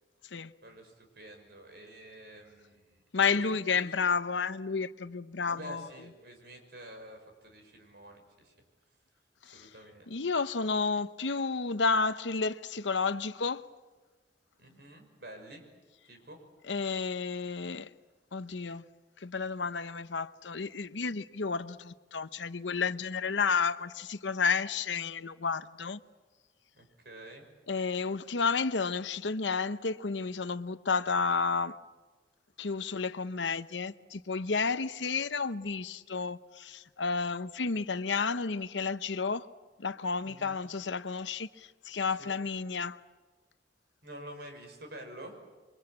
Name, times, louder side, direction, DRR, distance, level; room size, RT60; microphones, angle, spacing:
voice 1, 0.6-3.0 3.3-3.8 5.4-8.5 9.4-10.2 14.6-15.6 16.1-16.4 26.8-27.5 40.2-40.6 42.1-42.3 44.0-45.4, right 1 dB, 60° right, 6.0 m, -48 dB
voice 2, 3.1-5.9 9.5-9.7 10.1-13.6 16.7-17.9 18.3-18.8 19.2-26.0 27.7-31.8 32.6-39.5 39.8-43.0, left 5 dB, 85° left, 0.9 m, -31 dB
27.5 x 24.0 x 8.8 m
head